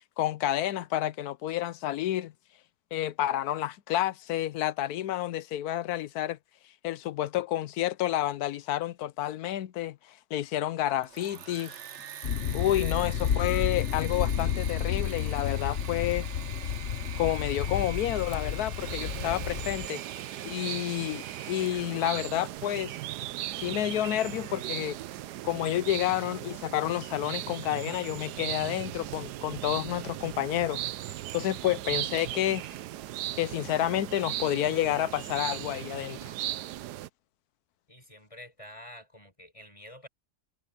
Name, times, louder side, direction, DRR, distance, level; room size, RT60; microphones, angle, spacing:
voice 1, 0.2-2.3 2.9-6.4 6.8-11.8 12.5-16.3 17.2-20.0 20.4-23.0 23.6-25.0 25.4-32.7 33.4-36.3, left 13 dB, 75° left, 1.1 m, -30 dB
Engine / Mechanisms, 10.9-22.1, right 9 dB, 55° right, 1.0 m, -44 dB
sound 1, 12.2-19.9, left 9 dB, 50° left, 0.9 m, -31 dB
sound 2, 18.8-37.1, right 14 dB, 90° right, 1.2 m, -38 dB
voice 2, 37.9-40.1, left 1 dB, 20° left, 7.1 m, -48 dB
omnidirectional pair, 1.7 m